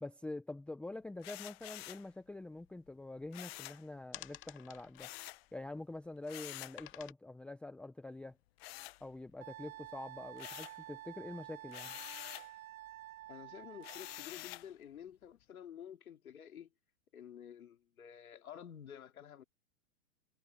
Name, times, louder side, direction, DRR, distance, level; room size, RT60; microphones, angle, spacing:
voice 1, 0.0-5.1 5.5-8.4 9.0-12.0, left 2 dB, 5° left, 0.7 m, -46 dB
sound 1, 1.2-2.1 3.3-3.9 5.0-5.5 6.3-6.8 8.6-9.5 9.8-10.8 11.7-12.5 13.8-14.7, left 20 dB, 45° left, 0.8 m, -48 dB
sound 2, 2.1-2.2 2.5-3.6 4.0-6.1 6.7-7.1, left 15 dB, 30° left, 2.0 m, -52 dB
Wind instrument woodwind instrument, 9.4-14.3, right 15 dB, 75° right, 0.7 m, -50 dB
voice 2, 13.3-16.7 17.1-19.4, left 9 dB, 85° left, 3.1 m, -51 dB
hypercardioid pair, 135°, 41 cm